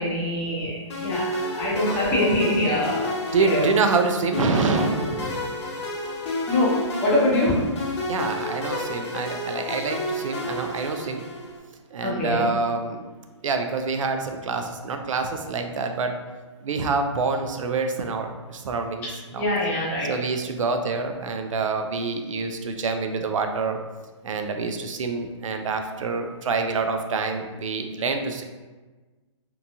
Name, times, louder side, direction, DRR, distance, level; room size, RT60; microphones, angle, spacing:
voice 1, 0.0-3.6 6.5-7.6 12.0-12.4 19.4-20.1, left 1 dB, 10° left, -8 dB, 0.6 m, -24 dB
sound 1, 0.9-11.6, left 1 dB, 60° left, 0.7 m, -31 dB
voice 2, 3.3-5.5 8.1-11.2 11.9-13.0 13.4-16.1 16.6-19.1 19.3-19.5 20.1-23.8 24.2-28.4, right 4 dB, 90° right, 5 dB, 0.4 m, -26 dB
2.9 x 2.3 x 2.5 m, 1.3 s
hypercardioid pair, 165°, 16 cm